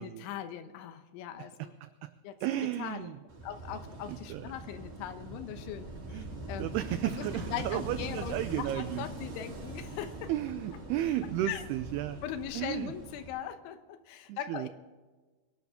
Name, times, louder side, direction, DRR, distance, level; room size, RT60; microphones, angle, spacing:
voice 1, 0.0-1.7 2.2-2.4 2.8-3.1 3.4-6.8 7.1-10.3 11.4-11.6 12.2-14.7, left 10 dB, 85° left, 10 dB, 3.5 m, -40 dB
voice 2, 1.4-2.1 2.4-3.2 4.3-4.5 6.1-6.3 6.6-9.0 10.3-12.2 12.5-12.9 14.3-14.7, right 12 dB, 90° right, 11 dB, 2.2 m, -33 dB
Wind / Waves surf, 3.3-13.3, right 2 dB, 35° right, 4.7 m, -42 dB
23.0 x 12.0 x 3.7 m, 1.3 s
omnidirectional pair, 5.3 m